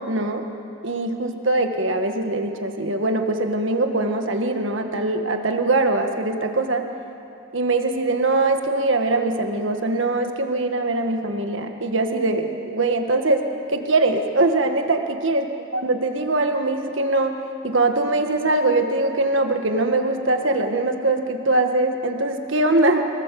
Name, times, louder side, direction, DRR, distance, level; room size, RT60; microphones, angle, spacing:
voice 1, 0.1-0.5 0.8-6.9 7.5-13.4 13.7-15.4 15.8-17.4 17.6-23.1, right 2 dB, 65° right, 5 dB, 1.7 m, -22 dB
25.5 x 18.5 x 7.6 m, 2.6 s
head